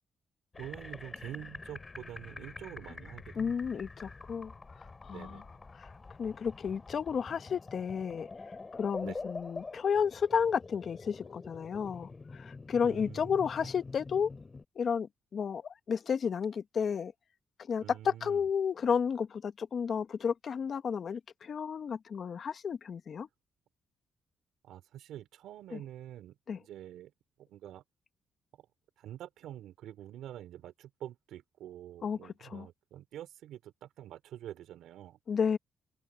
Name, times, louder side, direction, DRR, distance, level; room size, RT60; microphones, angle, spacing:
sound 1, 0.5-14.6, left 3 dB, 30° left, 3.8 m, -46 dB
voice 1, 0.6-3.6 5.1-5.5 9.0-9.2 12.8-13.3 17.8-18.4 24.6-27.1 27.4-27.8 28.6-28.7 29.0-35.2, right 12 dB, 85° right, 3.6 m, -46 dB
voice 2, 3.4-4.5 4.8-5.4 5.7-5.9 6.2-8.3 8.7-14.3 14.7-17.1 17.7-23.3 25.7-25.8 26.5-26.6 32.0-32.7 35.3-35.6, left 6 dB, 55° left, 1.3 m, -32 dB
open air
cardioid pair, 85°, 0 cm